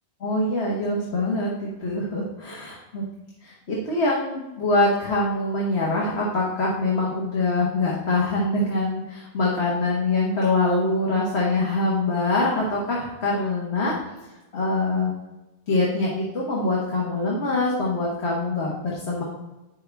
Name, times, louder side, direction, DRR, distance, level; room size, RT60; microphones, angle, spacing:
voice 1, 0.2-3.0 3.4-13.9 14.5-15.1 15.7-19.2, left 2 dB, 70° left, -3 dB, 1.5 m, -24 dB
8.3 x 6.3 x 3.4 m, 1.1 s
omnidirectional pair, 1.1 m